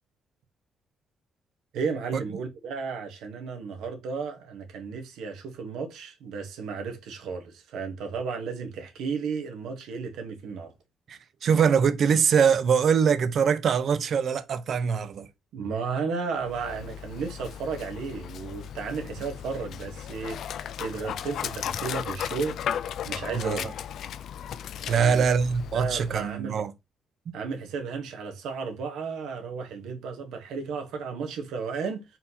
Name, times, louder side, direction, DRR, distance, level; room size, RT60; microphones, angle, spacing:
voice 1, 1.7-10.7 15.5-23.7 24.7-25.2 25.7-26.6 27.3-32.0, right 5 dB, 85° right, 1.2 m, -34 dB
voice 2, 11.1-15.3 23.3-23.7 24.9-26.7, right 6 dB, 60° right, 0.6 m, -23 dB
Dog, 16.4-26.3, left 9 dB, 70° left, 0.3 m, -36 dB
4.2 x 4.0 x 2.8 m
cardioid pair, 90°, 0 cm